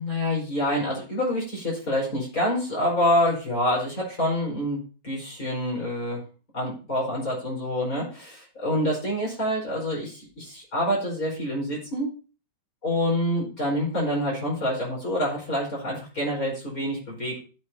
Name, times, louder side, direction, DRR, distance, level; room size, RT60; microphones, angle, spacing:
voice 1, 0.0-6.2 6.5-12.1 12.8-17.4, left 1 dB, 45° left, -5 dB, 5.3 m, -27 dB
15.5 x 7.9 x 2.9 m, 0.35 s
omnidirectional pair, 2.2 m